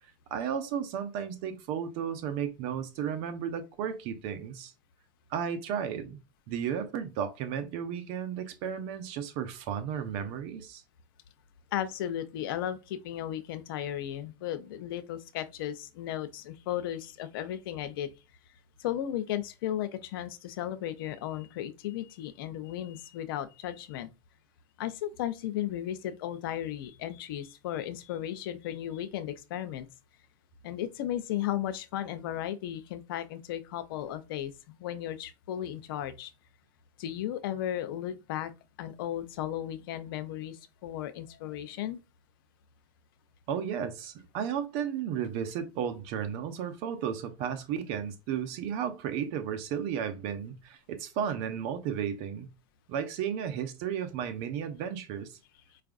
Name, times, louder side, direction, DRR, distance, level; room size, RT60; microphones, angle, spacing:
voice 1, 0.3-4.7 5.3-6.2 6.5-10.8 43.5-52.5 52.9-55.4, right 8 dB, 60° right, 0.8 m, -34 dB
voice 2, 11.7-18.1 18.8-24.1 24.8-29.9 30.6-36.3 37.0-38.5 38.8-42.0, left 11 dB, 75° left, 0.5 m, -35 dB
4.6 x 2.4 x 2.4 m
supercardioid pair, 110°, 12 cm